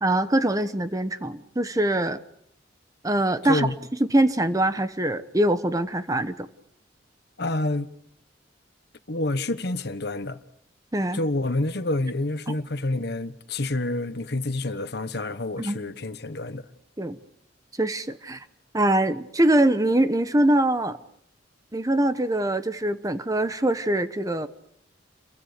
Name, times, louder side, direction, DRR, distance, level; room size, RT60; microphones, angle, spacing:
voice 1, 0.0-2.2 3.0-3.7 4.1-6.5 10.9-11.2 12.5-12.6 15.6-15.8 17.0-17.2 17.8-18.4 18.7-21.0 21.7-24.5, right 1 dB, 20° right, 1.0 m, -23 dB
voice 2, 3.4-3.7 7.4-7.9 9.1-10.4 11.1-16.7, left 2 dB, 60° left, 1.3 m, -28 dB
29.5 x 23.5 x 5.2 m
head